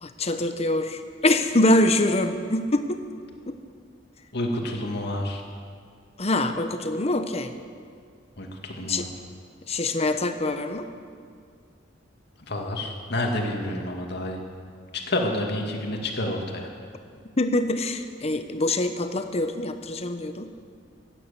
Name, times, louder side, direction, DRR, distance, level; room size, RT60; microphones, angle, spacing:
voice 1, 0.0-3.0 3.5-3.6 6.2-7.5 8.8-9.1 9.7-10.9 17.4-20.5, left 1 dB, 35° left, 8 dB, 1.0 m, -24 dB
voice 2, 4.3-5.4 8.4-9.1 12.5-14.4 14.9-16.7, left 1 dB, 60° left, 1 dB, 2.2 m, -29 dB
16.0 x 10.0 x 8.3 m, 2.1 s
head